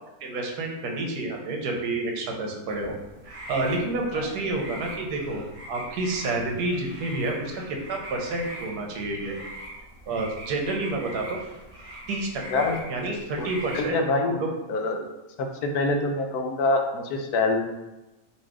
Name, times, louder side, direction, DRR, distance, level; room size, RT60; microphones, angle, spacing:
voice 1, 0.2-2.9 3.3-9.3 10.1-11.4 12.1-14.0 14.2-14.5, right 2 dB, 85° right, 1 dB, 1.3 m, -29 dB
sound 1, 2.7-13.9, right 1 dB, 65° right, 0.3 m, -42 dB
voice 2, 13.7-14.3 14.7-15.1 15.4-17.6, left 3 dB, 80° left, 4 dB, 1.1 m, -25 dB
4.2 x 2.7 x 4.6 m, 1.0 s
omnidirectional pair, 1.6 m